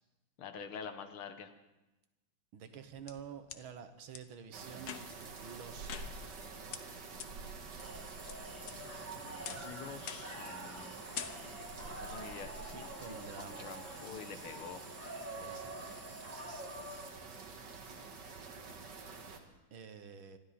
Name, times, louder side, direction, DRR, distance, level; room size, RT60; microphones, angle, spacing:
voice 1, 0.4-1.5 9.5-10.9 11.9-12.9 13.4-14.9, left 6 dB, 80° left, 8 dB, 1.9 m, -47 dB
voice 2, 2.5-6.2 9.2-9.8 11.7-12.2 12.7-13.7 15.4-15.7 16.0-16.7 19.7-20.4, right 7 dB, 75° right, 9 dB, 1.9 m, -50 dB
sound 1, 2.6-3.6 4.1-4.2 4.8-5.3 5.9-6.4 6.7-6.8 7.2-7.3 7.8-8.3 8.7-9.1 9.4-9.7 10.1-10.4 10.7-10.9 11.1-11.7, left 8 dB, 60° left, 1.1 m, -45 dB
sound 2, 4.5-19.4, right 4 dB, 55° right, 2.0 m, -48 dB
sound 3, 7.8-17.1, right 1 dB, 5° right, 1.7 m, -47 dB
26.0 x 12.5 x 4.2 m, 1.0 s
omnidirectional pair, 2.3 m